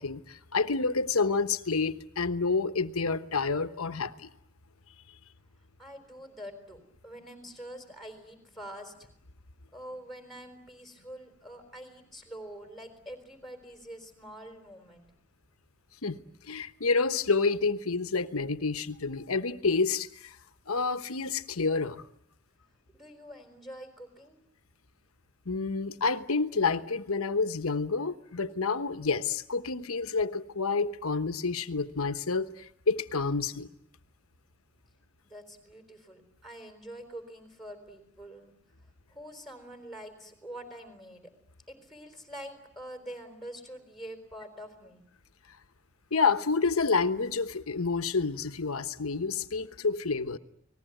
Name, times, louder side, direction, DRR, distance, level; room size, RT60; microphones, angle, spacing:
voice 1, 0.0-4.3 16.0-16.2 16.5-20.4 20.7-22.0 25.5-33.7 46.1-50.4, left 4 dB, 85° left, 1.1 m, -29 dB
voice 2, 5.6-9.1 9.7-15.0 22.9-24.4 35.2-38.6 39.1-41.3 41.7-45.0, equal, ahead, 3.9 m, -45 dB
30.0 x 20.0 x 9.1 m
head